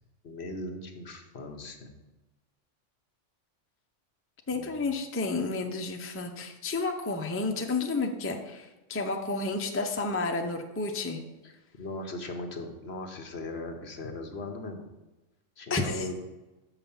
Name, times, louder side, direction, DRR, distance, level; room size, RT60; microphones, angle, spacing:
voice 1, 0.2-1.9 4.5-4.8 11.4-14.8 15.6-16.2, left 2 dB, 60° left, 5 dB, 1.2 m, -38 dB
voice 2, 4.5-11.2 15.7-16.1, left 3 dB, 15° left, 4 dB, 0.5 m, -31 dB
6.5 x 5.7 x 7.0 m, 1.1 s
omnidirectional pair, 1.3 m